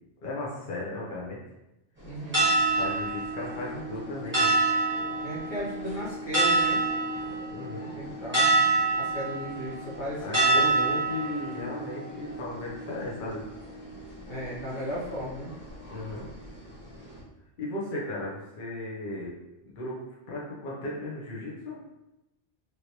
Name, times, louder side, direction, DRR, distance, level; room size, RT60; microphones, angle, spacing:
voice 1, 0.2-1.4 2.7-4.6 7.5-7.9 10.2-13.4 15.9-16.3 17.6-19.3 19.8-20.0 20.3-21.8, left 2 dB, 50° left, -5 dB, 0.8 m, -35 dB
voice 2, 2.0-2.5 5.2-6.8 7.9-8.5 9.0-11.0 14.3-15.5, equal, 75° left, -7 dB, 1.5 m, -35 dB
sound 1, 2.0-17.2, right 3 dB, 10° right, 1.2 m, -28 dB
3.1 x 3.0 x 2.7 m, 0.94 s
omnidirectional pair, 1.2 m